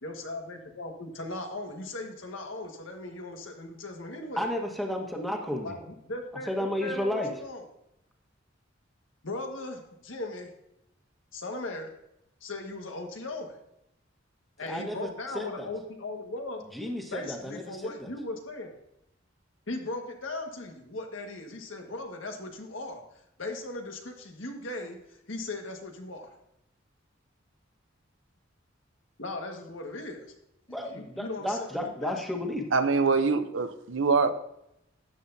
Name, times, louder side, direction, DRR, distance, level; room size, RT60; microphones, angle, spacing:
voice 1, 0.0-4.4 5.6-7.6 9.2-10.5 11.3-11.9 12.4-13.6 14.6-16.6 17.1-18.7 19.7-23.0 23.4-25.0 25.3-26.3 29.2-30.2 30.7-32.2, left 2 dB, 85° left, 1.7 m, -38 dB
voice 2, 4.4-5.7 6.5-7.3 14.6-15.1 15.3-15.7 16.7-18.1 30.7-32.6, left 1 dB, ahead, 1.4 m, -32 dB
voice 3, 32.7-34.3, right 4 dB, 80° right, 0.7 m, -24 dB
13.0 x 9.2 x 2.7 m
head